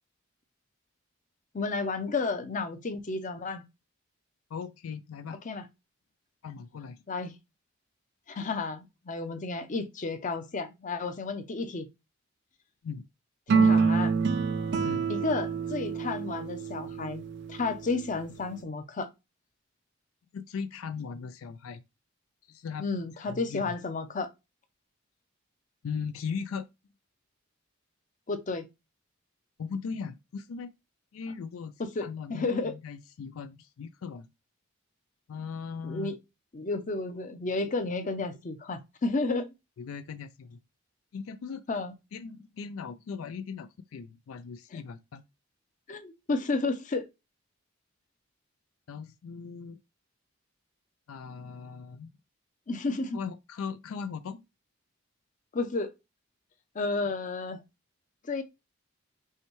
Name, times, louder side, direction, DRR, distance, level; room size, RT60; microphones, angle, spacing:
voice 1, 1.5-3.6 5.4-5.6 7.1-7.3 8.3-11.9 13.5-14.1 15.1-17.2 17.5-19.1 22.8-24.3 28.3-28.6 32.0-32.7 35.8-36.1 36.5-39.5 41.7-41.9 45.9-47.0 52.7-53.2 55.5-55.9 56.7-57.6 58.3-58.4, left 3 dB, 40° left, 0.6 m, -32 dB
voice 2, 4.5-5.4 6.4-7.0 12.8-13.1 14.8-15.1 20.3-21.8 22.5-22.8 23.2-23.7 25.8-26.7 29.6-30.7 31.1-34.3 35.3-36.1 39.8-40.6 41.1-41.6 42.1-45.2 48.9-49.8 51.1-52.1 53.1-54.4, left 6 dB, 85° left, 0.4 m, -38 dB
sound 1, 13.5-17.9, right 5 dB, 55° right, 0.4 m, -27 dB
5.5 x 2.2 x 3.1 m
head